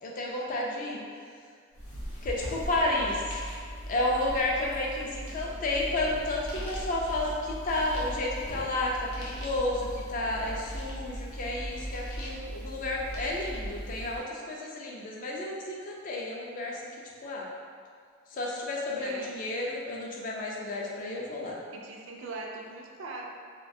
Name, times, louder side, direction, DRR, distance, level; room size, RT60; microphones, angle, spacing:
voice 1, 0.0-1.0 2.2-3.2 3.9-16.8 17.2-17.5 18.3-21.6, left 2 dB, 40° left, -2 dB, 0.3 m, -31 dB
sound 1, 1.7-14.2, equal, 90° left, 0.6 m, -39 dB
voice 2, 2.7-3.2 19.0-19.3 21.7-23.2, right 3 dB, 60° right, 0 dB, 0.3 m, -41 dB
2.3 x 2.1 x 2.6 m, 2.1 s
head